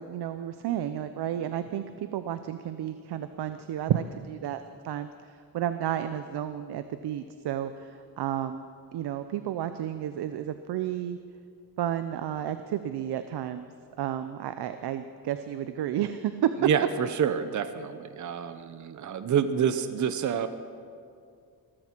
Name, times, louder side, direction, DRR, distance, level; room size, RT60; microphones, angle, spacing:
voice 1, 0.0-11.2 11.8-13.7 14.0-16.5, right 11 dB, 80° right, 10 dB, 0.7 m, -32 dB
voice 2, 16.6-20.5, right 8 dB, 50° right, 11 dB, 0.8 m, -28 dB
19.0 x 14.0 x 4.5 m, 2.2 s
cardioid pair, 120°, 39 cm